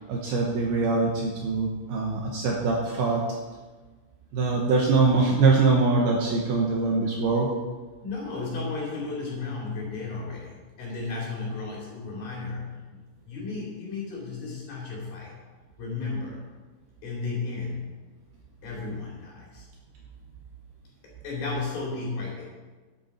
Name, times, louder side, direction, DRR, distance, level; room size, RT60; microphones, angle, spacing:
voice 1, 0.1-3.3 4.3-7.5, right 3 dB, 70° right, -1 dB, 2.6 m, -23 dB
voice 2, 8.0-15.4 15.8-16.4 17.0-17.9 18.6-19.7 21.0-22.5, left 3 dB, 50° left, -4 dB, 4.4 m, -34 dB
12.0 x 9.4 x 4.4 m, 1.3 s
omnidirectional pair, 5.4 m